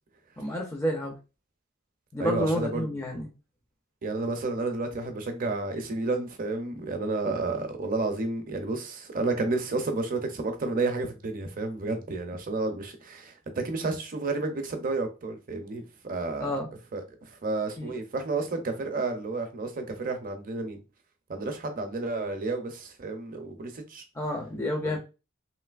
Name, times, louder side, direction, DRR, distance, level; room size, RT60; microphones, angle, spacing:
voice 1, 0.4-1.1 2.1-3.3 16.4-16.7 17.8-17.9 24.2-25.0, equal, 15° left, 0.4 m, -29 dB
voice 2, 2.2-2.9 4.0-16.6 16.9-20.8 21.3-24.0 24.8-25.0, right 3 dB, 40° right, 0.6 m, -31 dB
3.1 x 2.7 x 2.4 m
head